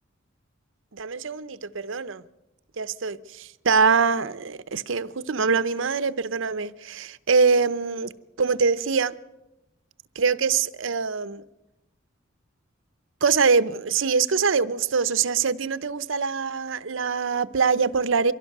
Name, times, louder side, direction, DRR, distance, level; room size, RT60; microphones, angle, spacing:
voice 1, 0.9-2.2 2.8-8.1 8.4-9.1 10.2-11.4 13.2-18.3, right 5 dB, 75° right, 0.8 m, -23 dB
23.5 x 16.5 x 6.6 m
head